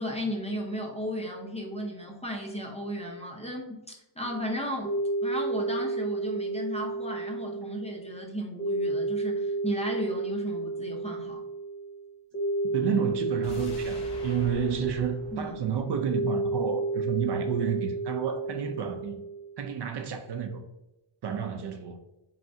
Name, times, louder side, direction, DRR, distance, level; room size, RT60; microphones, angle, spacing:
voice 1, 0.0-4.9 5.2-11.4 15.3-15.6, equal, 15° left, 0.5 m, -35 dB
sound 1, 4.2-19.6, right 2 dB, 35° left, 0.9 m, -32 dB
voice 2, 12.7-19.2 19.6-20.6 21.2-22.0, right 7 dB, 55° right, 0.5 m, -30 dB
sound 2, 13.4-16.6 16.9-17.0, left 1 dB, 80° left, 1.0 m, -45 dB
3.6 x 3.3 x 2.6 m
wide cardioid pair, 135°, 50 cm